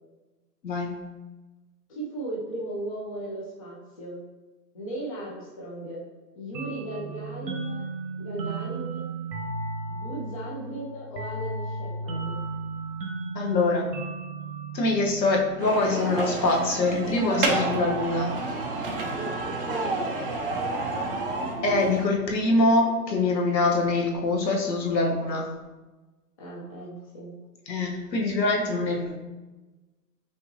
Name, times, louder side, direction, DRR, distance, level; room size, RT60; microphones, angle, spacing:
voice 1, 0.6-1.0 13.3-13.9 14.7-18.3 21.6-25.5 27.7-29.2, left 2 dB, 80° left, 0 dB, 1.2 m, -24 dB
voice 2, 1.9-4.2 4.7-6.1 6.3-7.9 8.2-9.1 9.9-12.4 19.1-20.6 26.4-27.3, right 1 dB, 20° left, -5 dB, 0.5 m, -37 dB
sound 1, 6.5-15.9, right 3 dB, 80° right, 1.2 m, -35 dB
sound 2, 15.6-22.1, right 3 dB, 35° right, 0.4 m, -30 dB
5.4 x 2.9 x 2.7 m, 1.2 s
hypercardioid pair, 140°, 50 cm